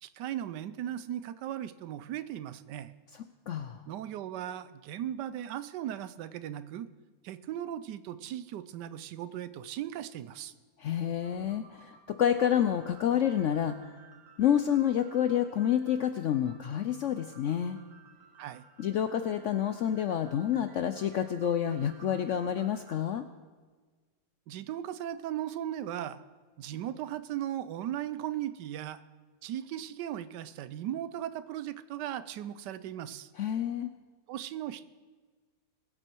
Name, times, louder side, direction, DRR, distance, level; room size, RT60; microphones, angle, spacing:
voice 1, 0.0-2.9 3.9-6.9 7.2-10.5 18.4-18.6 24.5-26.2 26.6-29.0 29.4-33.3 34.3-34.8, right 11 dB, 85° right, 15 dB, 1.3 m, -37 dB
voice 2, 3.5-3.8 10.8-13.8 14.4-17.8 18.8-23.3 33.4-33.9, left 9 dB, 75° left, 10 dB, 0.7 m, -28 dB
sound 1, 11.2-23.0, right 5 dB, 50° right, 2.1 m, -57 dB
21.5 x 7.8 x 4.5 m, 1.4 s
omnidirectional pair, 1.8 m